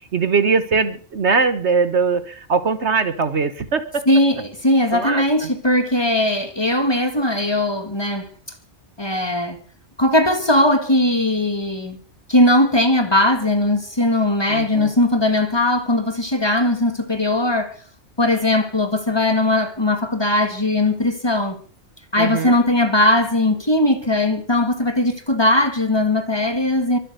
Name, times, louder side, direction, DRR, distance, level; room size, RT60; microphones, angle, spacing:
voice 1, 0.1-4.0 4.9-5.5 14.5-14.9 22.2-22.5, right 5 dB, 60° right, 1.4 m, -21 dB
voice 2, 4.1-8.3 9.0-9.6 10.0-12.0 12.3-17.8 18.2-21.6 22.1-27.0, left 1 dB, 20° left, 1.8 m, -19 dB
23.5 x 8.5 x 6.7 m
omnidirectional pair, 1.4 m